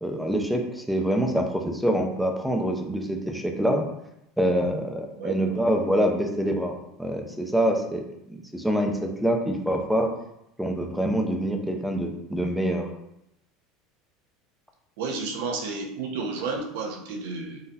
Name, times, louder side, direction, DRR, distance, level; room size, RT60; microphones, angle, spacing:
voice 1, 0.0-3.9 4.4-6.7 7.0-10.1 10.6-12.9, equal, ahead, 3 dB, 0.5 m, -25 dB
voice 2, 5.2-5.6 15.0-17.6, right 4 dB, 80° right, 1 dB, 0.8 m, -31 dB
4.2 x 3.9 x 2.7 m, 0.82 s
supercardioid pair, 145°, 0 cm